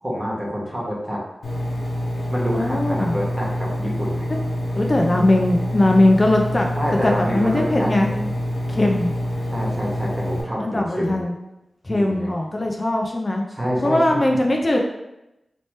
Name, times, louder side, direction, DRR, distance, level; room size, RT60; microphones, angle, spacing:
voice 1, 0.0-1.2 2.3-4.2 6.8-8.3 9.5-11.2 11.9-12.3 13.5-14.4, equal, 25° right, -5 dB, 1.3 m, -27 dB
Engine, 1.4-10.4, equal, 80° left, 1.0 m, -26 dB
voice 2, 2.5-3.2 4.7-6.7 7.0-8.1 8.7-9.1 10.6-11.3 11.8-13.4 13.8-14.8, left 1 dB, 40° left, 1 dB, 0.4 m, -20 dB
3.1 x 2.9 x 3.1 m, 0.91 s
cardioid pair, 50°, 0 cm